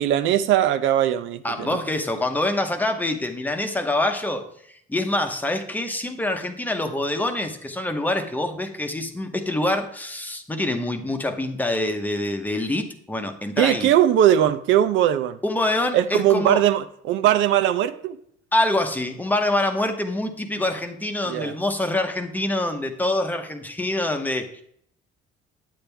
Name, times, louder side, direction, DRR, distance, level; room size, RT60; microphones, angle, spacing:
voice 1, 0.0-1.8 13.6-15.4 15.9-18.2 21.2-21.5, right 11 dB, 85° right, 11 dB, 0.7 m, -20 dB
voice 2, 1.4-13.9 15.4-16.6 18.5-24.5, left 1 dB, 10° left, 5 dB, 0.9 m, -25 dB
9.3 x 8.9 x 3.4 m, 0.66 s
cardioid pair, 155°, 20 cm